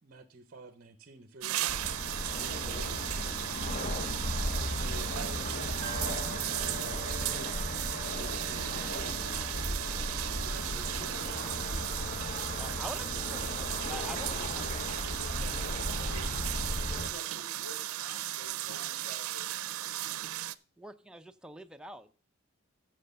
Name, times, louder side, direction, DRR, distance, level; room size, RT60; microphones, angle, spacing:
voice 1, 0.0-5.7 6.5-7.2 8.2-9.3 9.7-12.2, right 2 dB, 45° right, 8 dB, 0.8 m, -51 dB
sound 1, 1.4-20.5, right 14 dB, 85° right, 0.5 m, -36 dB
sound 2, 1.7-17.1, left 1 dB, 35° left, 0.9 m, -36 dB
sound 3, 5.8-17.4 17.7-17.8, right 4 dB, 25° right, 1.5 m, -51 dB
voice 2, 12.6-13.5 13.9-14.3 14.5-14.6 20.8-22.1, right 1 dB, 5° right, 7 dB, 0.5 m, -44 dB
voice 3, 13.8-16.5 17.0-19.6, equal, 85° left, 2 dB, 3.8 m, -50 dB
7.8 x 6.8 x 6.6 m, 0.40 s
head